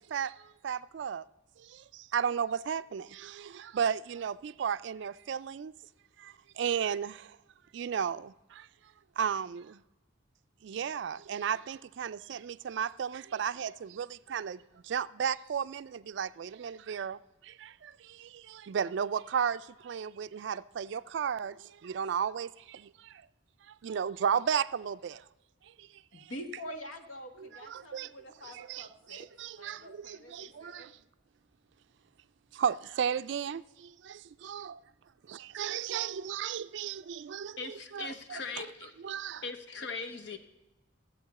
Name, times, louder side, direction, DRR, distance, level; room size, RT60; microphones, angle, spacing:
voice 1, 0.1-1.2 1.6-5.7 6.2-7.4 7.7-8.7 9.2-9.8 10.6-23.2 23.7-25.2 25.8-25.9 26.2-26.3 27.4-28.1 28.4-30.9 32.5-34.8 35.3-38.7 39.0-39.4, right 7 dB, 60° right, 0.3 m, -34 dB
voice 2, 26.1-29.3 29.6-30.9, equal, 80° left, 1.3 m, -46 dB
voice 3, 37.6-38.9 39.4-40.4, left 4 dB, 60° left, 0.9 m, -39 dB
13.5 x 8.0 x 4.1 m
head